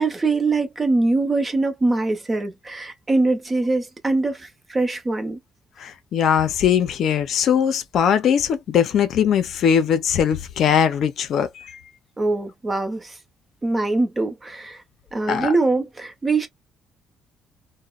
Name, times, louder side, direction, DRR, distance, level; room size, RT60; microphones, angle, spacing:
voice 1, 0.0-5.4 12.2-13.2 13.6-14.8 15.1-16.5, right 3 dB, 20° right, 0.8 m, -23 dB
voice 2, 5.8-11.7 15.3-15.5, left 8 dB, 65° left, 0.5 m, -20 dB
2.8 x 2.1 x 2.3 m
cardioid pair, 125°, 0 cm